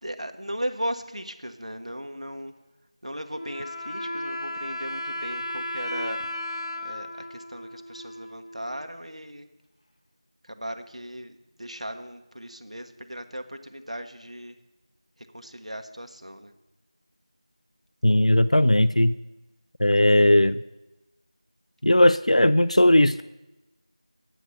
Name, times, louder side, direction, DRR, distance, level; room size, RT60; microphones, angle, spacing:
voice 1, 0.0-2.5 3.0-6.3 6.8-9.5 10.4-14.6 15.2-16.5, equal, 90° right, 6 dB, 0.9 m, -37 dB
Wind instrument woodwind instrument, 3.3-8.8, left 1 dB, 60° left, 1.0 m, -34 dB
voice 2, 18.0-19.2 19.8-20.6 21.8-23.2, left 1 dB, 90° left, 14 dB, 0.3 m, -18 dB
8.2 x 7.7 x 5.7 m, 0.99 s
figure-of-eight pair, 175°, 3 cm